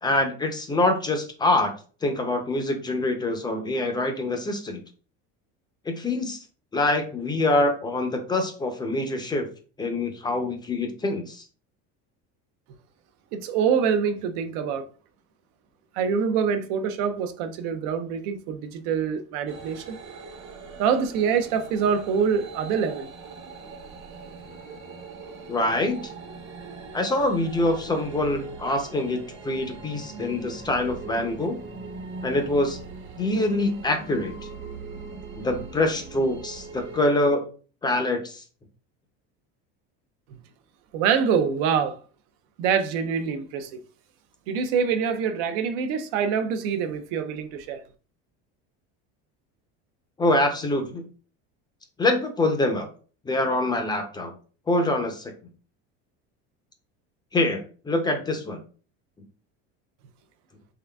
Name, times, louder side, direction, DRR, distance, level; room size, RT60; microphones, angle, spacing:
voice 1, 0.0-1.7 2.0-4.8 5.9-6.4 6.7-9.5 9.8-11.4 25.5-26.0 26.9-29.2 29.4-31.6 32.2-32.8 33.2-34.3 35.4-37.4 37.8-38.4 50.2-51.0 52.0-52.9 53.3-54.3 54.7-55.3 57.3-58.6, left 2 dB, 15° left, 0.4 m, -25 dB
voice 2, 13.3-14.9 15.9-20.0 20.8-23.1 40.9-42.0 42.6-43.8 44.5-47.8, right 7 dB, 75° right, 0.6 m, -25 dB
sound 1, 19.5-37.0, right 4 dB, 40° right, 1.0 m, -41 dB
3.7 x 3.3 x 2.2 m
cardioid pair, 150°, 31 cm